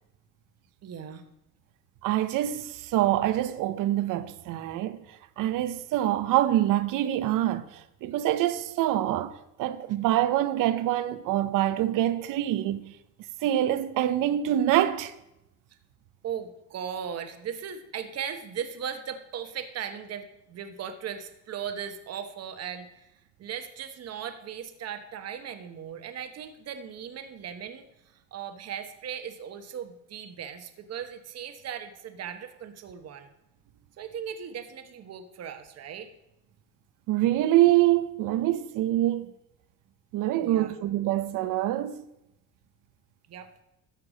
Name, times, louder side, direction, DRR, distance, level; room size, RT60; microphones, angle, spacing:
voice 1, 0.8-1.2 15.7-15.8 16.2-23.1 23.4-33.3 34.0-36.1 40.4-40.7 43.3-43.5, right 8 dB, 50° right, 1.0 m, -38 dB
voice 2, 2.0-5.0 5.4-12.9 13.4-15.1 37.1-39.3 40.1-42.0, right 13 dB, 65° right, 0.7 m, -25 dB
13.5 x 4.7 x 5.0 m
supercardioid pair, 95°, 34 cm